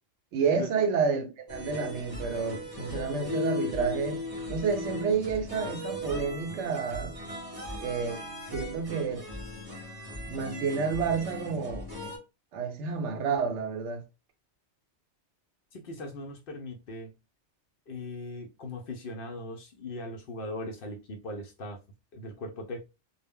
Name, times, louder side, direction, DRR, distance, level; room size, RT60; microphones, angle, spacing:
voice 1, 0.3-4.2 4.5-7.2 7.8-8.2 8.5-9.3 10.3-11.9 12.5-14.0, right 5 dB, 85° right, 0.9 m, -30 dB
sound 1, 1.5-12.2, left 2 dB, 20° right, 0.8 m, -37 dB
voice 2, 15.7-17.1 17.9-21.8 22.1-22.8, left 2 dB, 60° left, 0.6 m, -39 dB
2.1 x 2.0 x 3.4 m
omnidirectional pair, 1.2 m